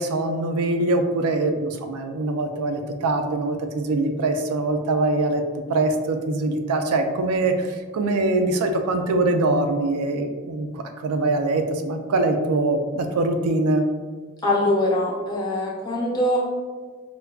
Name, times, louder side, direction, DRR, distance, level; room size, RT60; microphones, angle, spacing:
voice 1, 0.0-5.4 5.7-7.7 7.9-13.8, right 2 dB, 90° right, 6 dB, 0.4 m, -23 dB
voice 2, 14.4-16.4, left 1 dB, 20° left, -4 dB, 0.6 m, -22 dB
4.5 x 2.1 x 2.3 m, 1.5 s
head